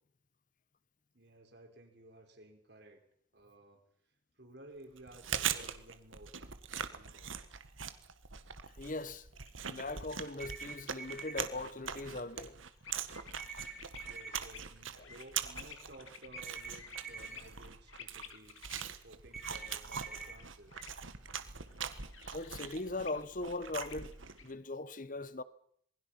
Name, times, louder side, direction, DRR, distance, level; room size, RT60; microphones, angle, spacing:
voice 1, 1.1-3.0 3.3-3.8 4.4-6.3 6.7-7.4 14.0-18.6 19.0-20.8, right 1 dB, 55° right, 4.8 m, -56 dB
Chewing mastication, 5.0-24.5, right 8 dB, 80° right, 1.7 m, -42 dB
sound 1, 8.7-24.6, left 7 dB, 85° left, 2.2 m, -56 dB
voice 2, 8.8-9.3 9.7-12.5 15.0-15.1 22.3-24.1 24.4-25.4, left 2 dB, 40° left, 1.0 m, -40 dB
sound 2, 10.4-11.4 13.4-14.4 16.4-17.3 19.3-20.3, right 5 dB, ahead, 3.8 m, -45 dB
26.5 x 22.0 x 5.9 m
head